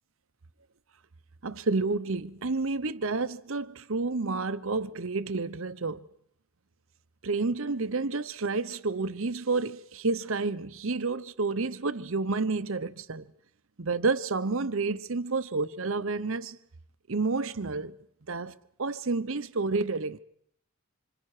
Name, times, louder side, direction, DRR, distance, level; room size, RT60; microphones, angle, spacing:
voice 1, 1.4-6.1 7.2-13.3 13.8-16.6 17.1-18.0 18.3-20.2, right 3 dB, 65° right, 0.9 m, -30 dB
26.5 x 26.5 x 4.9 m
head